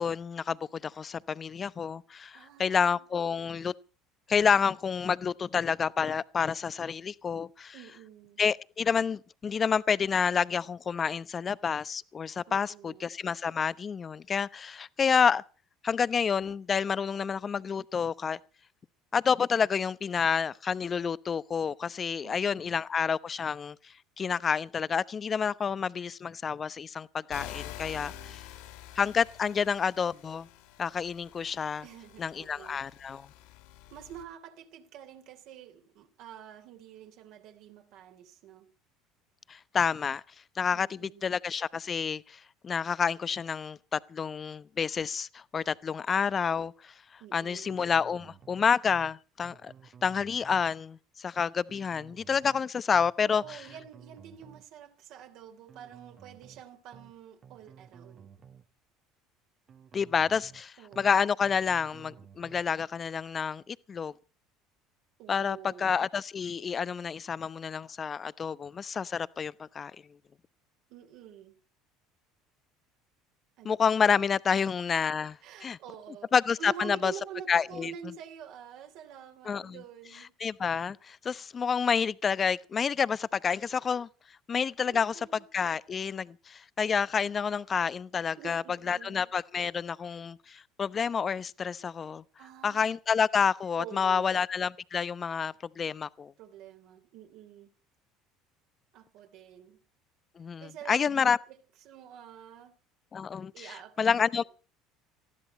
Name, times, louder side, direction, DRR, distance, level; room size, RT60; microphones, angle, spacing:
voice 1, 0.0-3.7 4.3-7.7 8.4-15.4 15.8-18.4 19.1-23.8 24.2-28.4 29.0-30.5 30.8-31.8 32.2-33.3 39.5-40.2 40.6-46.9 47.3-49.7 50.0-53.6 59.9-64.1 65.3-69.9 73.6-75.8 76.3-77.1 77.5-77.9 79.5-79.8 80.4-84.1 84.5-85.2 85.5-92.2 92.6-96.3 100.4-101.4 103.1-103.7 104.0-104.4, left 6 dB, 35° left, 0.8 m, -29 dB
voice 2, 2.3-3.0 7.7-8.4 12.5-13.1 22.2-22.8 27.9-28.4 31.8-32.8 33.9-38.7 40.7-41.4 47.2-47.8 53.2-58.3 60.8-61.2 65.2-65.9 70.9-71.5 73.6-73.8 74.5-74.7 75.4-80.3 84.9-85.5 88.4-89.3 92.4-93.0 93.8-94.4 96.4-97.7 98.9-99.8 100.6-101.6 101.8-102.7 103.5-104.4, right 9 dB, 60° right, 3.1 m, -47 dB
sound 1, 27.3-34.2, left 13 dB, 70° left, 3.4 m, -47 dB
sound 2, 47.7-48.6 48.9-49.1 49.4-50.7 51.7-52.6 52.9-53.1 53.4-54.7 55.7-56.6 56.9-57.1 57.4-58.7 59.7-60.6 60.9-61.1 61.4-62.7, right 7 dB, 40° right, 1.4 m, -54 dB
19.5 x 15.0 x 4.3 m
hypercardioid pair, 65°, 0 cm